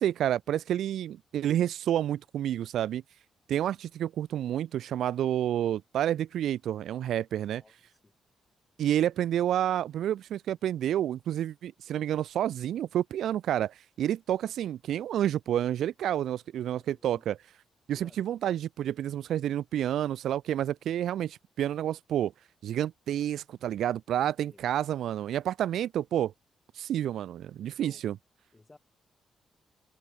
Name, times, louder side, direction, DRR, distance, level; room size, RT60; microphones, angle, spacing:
voice 1, 0.0-3.0 3.5-7.6 8.8-17.4 17.9-22.3 22.6-26.3 26.8-28.2, right 11 dB, 80° right, 0.3 m, -29 dB
voice 2, 7.5-8.1 16.8-17.3 17.9-18.2 24.4-24.6 27.6-28.0 28.5-28.8, left 3 dB, 20° left, 5.0 m, -57 dB
cardioid pair, 140°, 0 cm